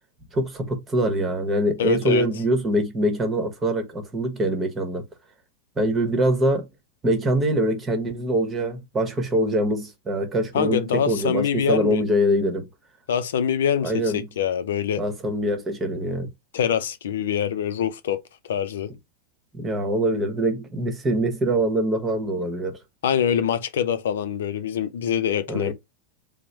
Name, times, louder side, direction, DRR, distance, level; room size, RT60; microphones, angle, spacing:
voice 1, 0.3-5.0 5.8-6.7 7.0-12.7 13.8-14.3 15.0-16.3 19.5-22.8 25.5-25.7, right 1 dB, 20° right, 1.0 m, -24 dB
voice 2, 1.8-2.3 10.5-12.0 13.1-15.0 16.5-18.2 18.4-18.9 23.0-25.7, left 8 dB, 80° left, 0.4 m, -24 dB
3.1 x 2.0 x 4.1 m
hypercardioid pair, 105°, 0 cm